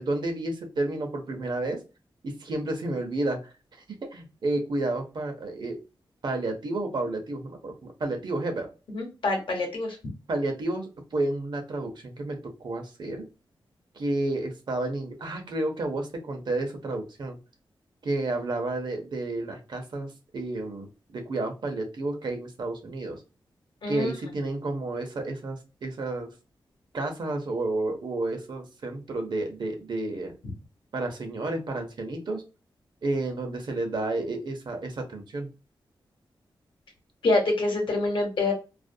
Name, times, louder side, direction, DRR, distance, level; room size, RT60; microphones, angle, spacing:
voice 1, 0.0-1.8 2.2-3.4 4.1-5.8 6.2-8.7 10.3-13.3 13.9-17.4 18.0-23.2 23.9-26.3 26.9-30.3 30.9-32.4 33.0-35.5, right 2 dB, 60° right, 4 dB, 0.7 m, -31 dB
voice 2, 8.9-10.0 23.8-24.1 30.4-30.5 37.2-38.5, left 2 dB, 70° left, 2 dB, 0.9 m, -26 dB
2.4 x 2.1 x 2.6 m, 0.30 s
wide cardioid pair, 110°, 9 cm